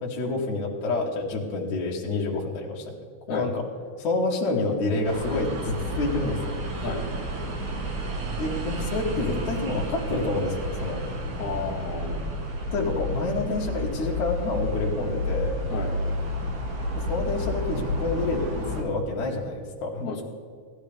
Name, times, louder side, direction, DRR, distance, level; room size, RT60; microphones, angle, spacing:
voice 1, 0.0-2.9 3.3-3.7 4.0-6.6 8.4-11.0 12.7-15.6 16.9-20.0, left 2 dB, 65° left, -3 dB, 2.8 m, -28 dB
sound 1, 5.0-18.8, equal, 60° right, 2.8 m, -30 dB
voice 2, 11.4-12.2 15.7-15.9 20.0-20.2, left 4 dB, 30° left, -4 dB, 1.6 m, -31 dB
16.5 x 13.0 x 3.5 m, 2.1 s
omnidirectional pair, 3.9 m